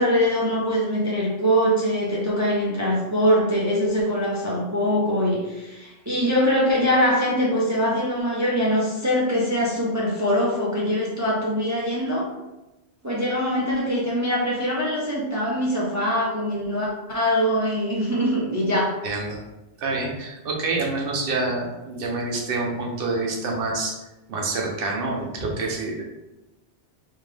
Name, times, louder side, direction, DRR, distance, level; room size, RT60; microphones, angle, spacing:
voice 1, 0.0-12.3 13.0-18.9, equal, 20° right, -5 dB, 0.6 m, -23 dB
voice 2, 19.0-19.4 19.8-23.9 24.3-26.0, right 3 dB, 60° right, -1 dB, 1.0 m, -27 dB
3.4 x 3.2 x 3.3 m, 1.0 s
omnidirectional pair, 1.1 m